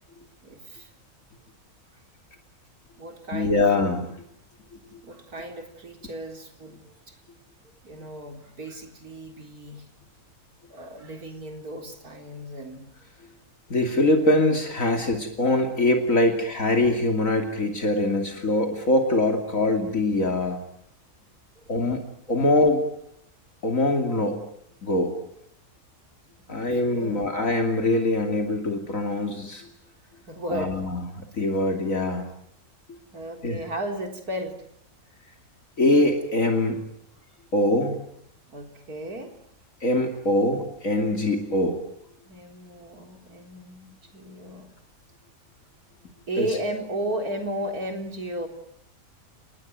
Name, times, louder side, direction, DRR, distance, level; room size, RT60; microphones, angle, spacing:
voice 1, 0.4-0.9 3.0-3.7 5.0-7.2 7.8-9.9 10.7-12.9 14.8-15.0 21.6-21.7 26.5-27.3 30.3-30.8 33.1-34.6 38.5-39.3 42.2-44.7 46.3-48.5, right 1 dB, 90° right, 4 dB, 4.3 m, -35 dB
voice 2, 3.3-4.0 13.7-20.6 21.7-22.0 22.3-22.8 23.6-24.4 24.8-25.1 26.5-29.7 30.5-32.2 33.4-33.6 35.8-36.8 37.5-38.0 39.8-41.8 46.4-46.5, left 2 dB, 60° left, 4 dB, 3.1 m, -23 dB
30.0 x 19.5 x 9.3 m, 0.73 s
omnidirectional pair, 1.6 m